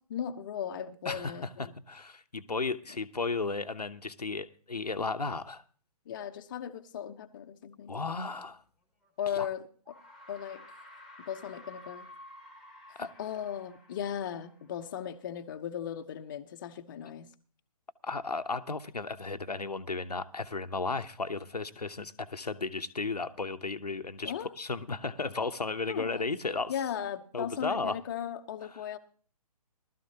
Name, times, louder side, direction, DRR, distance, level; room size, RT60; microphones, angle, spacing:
voice 1, 0.1-1.7 6.1-8.1 9.2-10.0 10.3-10.6 11.2-12.1 13.0-17.3 24.2-24.5 25.9-26.3 26.7-29.0, left 9 dB, 30° left, 0.8 m, -37 dB
voice 2, 1.0-5.6 7.9-8.6 9.3-9.5 13.0-13.1 18.0-26.7 27.3-28.0, left 3 dB, 85° left, 0.9 m, -34 dB
sound 1, 9.0-9.1 9.9-15.1, left 1 dB, ahead, 1.7 m, -52 dB
19.0 x 13.0 x 2.9 m
figure-of-eight pair, 140°, 20 cm